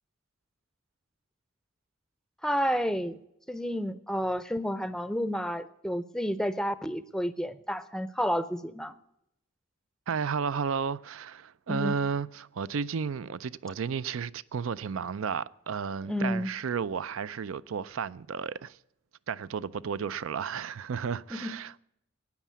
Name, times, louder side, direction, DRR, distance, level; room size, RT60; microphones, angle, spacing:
voice 1, 2.4-3.2 3.5-8.9 11.7-12.0 16.1-16.5 21.3-21.6, equal, 5° left, 0.5 m, -30 dB
voice 2, 10.1-18.8 19.3-21.7, right 6 dB, 75° right, 0.4 m, -33 dB
13.0 x 9.1 x 8.3 m
head